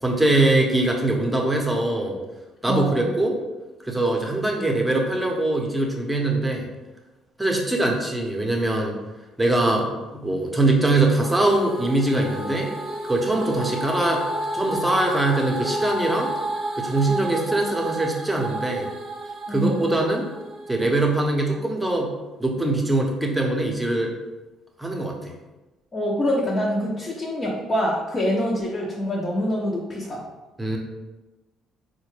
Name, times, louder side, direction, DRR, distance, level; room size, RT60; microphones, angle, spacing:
voice 1, 0.0-2.2 2.6-3.4 3.8-6.7 7.4-9.0 9.4-12.7 13.0-14.3 14.5-16.3 16.8-18.9 19.5-20.3 20.7-22.1 22.4-24.1 24.8-25.3 30.6-30.8, right 2 dB, 10° right, 1 dB, 0.8 m, -22 dB
voice 2, 2.7-3.1 19.5-19.9 25.9-30.3, equal, 35° left, -4 dB, 0.7 m, -25 dB
sound 1, 11.2-21.4, right 1 dB, 50° right, 0.6 m, -32 dB
4.1 x 2.2 x 3.2 m, 1.1 s
supercardioid pair, 70°, 0 cm